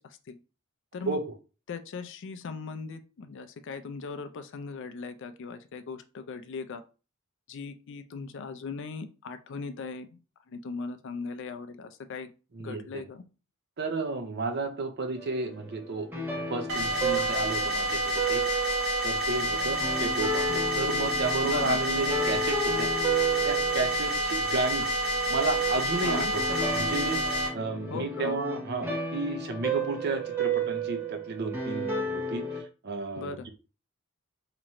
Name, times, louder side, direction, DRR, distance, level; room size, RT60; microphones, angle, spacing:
voice 1, 1.7-6.8 7.5-10.2 10.5-12.3 12.6-13.2 21.4-21.8 26.0-26.3 27.9-28.4 33.2-33.5, left 4 dB, 60° left, 9 dB, 0.4 m, -38 dB
voice 2, 12.5-13.0 13.8-16.1 16.5-18.4 19.0-22.9 23.4-24.9 25.3-26.4 26.7-27.2 27.5-32.4 32.8-33.5, right 3 dB, 50° right, 6 dB, 0.6 m, -32 dB
sound 1, 15.2-32.6, right 3 dB, 10° right, 0.8 m, -33 dB
sound 2, 16.7-27.5, equal, 80° right, 1.4 m, -29 dB
3.0 x 2.5 x 4.1 m, 0.34 s
head